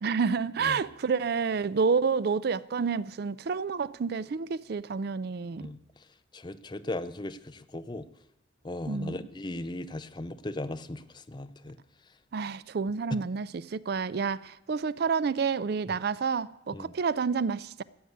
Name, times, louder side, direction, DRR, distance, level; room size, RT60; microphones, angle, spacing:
voice 1, 0.0-5.7 8.9-9.2 12.3-17.8, right 5 dB, 55° right, 0.4 m, -29 dB
voice 2, 6.3-8.1 8.6-11.8 16.7-16.9, left 1 dB, 25° left, 0.6 m, -37 dB
15.0 x 8.0 x 9.3 m
head